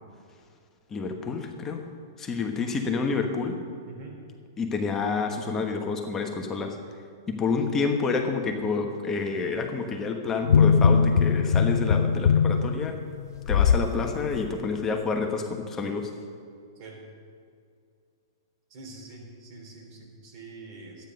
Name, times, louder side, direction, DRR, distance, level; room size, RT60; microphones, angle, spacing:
voice 1, 0.9-1.8 2.2-3.6 4.6-6.8 7.3-13.0 13.5-16.1, left 4 dB, 20° left, 3 dB, 1.2 m, -28 dB
voice 2, 3.9-4.2 16.8-17.0 18.7-21.0, right 3 dB, 50° right, 0 dB, 3.3 m, -45 dB
sound 1, 10.4-13.9 14.3-14.5, left 6 dB, 70° left, 0.4 m, -21 dB
12.0 x 9.4 x 5.5 m, 2.3 s
hypercardioid pair, 115°, 2 cm